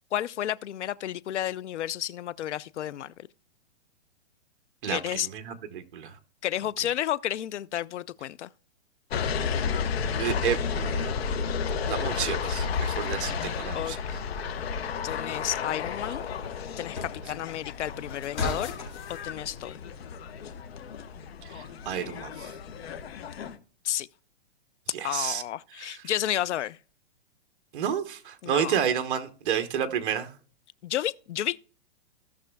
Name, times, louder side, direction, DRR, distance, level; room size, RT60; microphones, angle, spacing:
voice 1, 0.1-3.1 4.9-5.3 6.4-8.5 13.7-14.2 15.0-16.2 16.8-18.7 19.1-19.7 23.8-24.1 25.0-26.8 28.4-28.8 30.8-31.6, left 11 dB, 85° left, 0.6 m, -31 dB
voice 2, 4.8-6.2 10.2-11.2 11.8-14.2 21.4-22.5 24.9-25.4 25.8-26.0 27.7-30.3, right 8 dB, 50° right, 1.0 m, -31 dB
sound 1, 9.1-23.6, left 6 dB, 60° left, 1.1 m, -32 dB
sound 2, 14.2-19.2, left 3 dB, 35° left, 3.7 m, -39 dB
17.0 x 6.1 x 2.2 m
hypercardioid pair, 160°, 34 cm